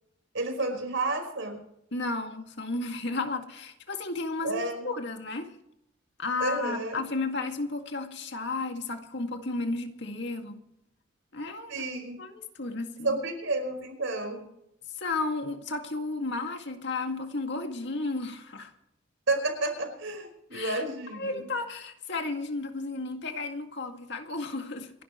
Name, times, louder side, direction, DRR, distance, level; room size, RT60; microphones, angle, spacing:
voice 1, 0.3-1.6 4.4-4.9 6.4-7.0 11.7-12.2 13.0-14.5 19.3-21.4, right 2 dB, 75° right, 3 dB, 5.1 m, -31 dB
voice 2, 1.9-5.5 6.2-10.6 11.3-11.8 12.2-13.2 14.9-18.7 20.5-20.8 21.1-24.9, left 3 dB, 60° left, 5 dB, 2.1 m, -33 dB
28.0 x 12.0 x 3.1 m, 0.79 s
head